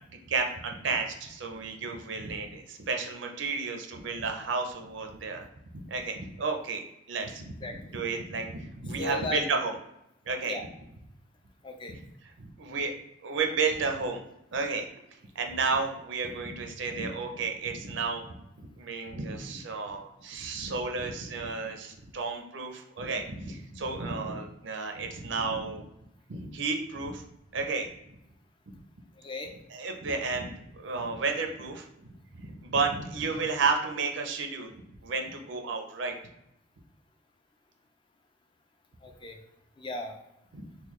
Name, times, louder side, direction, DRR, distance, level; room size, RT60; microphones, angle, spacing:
voice 1, 0.3-9.7 10.3-10.6 11.9-12.0 12.4-12.9 13.2-14.2 14.5-14.9 15.4-25.8 26.3-27.2 27.5-27.9 29.7-31.9 32.3-34.7 35.0-36.1 40.5-40.7, right 4 dB, 70° right, 4 dB, 0.5 m, -32 dB
voice 2, 9.0-9.4 10.5-10.7 11.6-12.0 29.2-29.5 39.0-39.4 39.8-40.2, left 2 dB, 25° left, 3 dB, 0.3 m, -36 dB
3.7 x 2.2 x 3.1 m, 0.83 s
head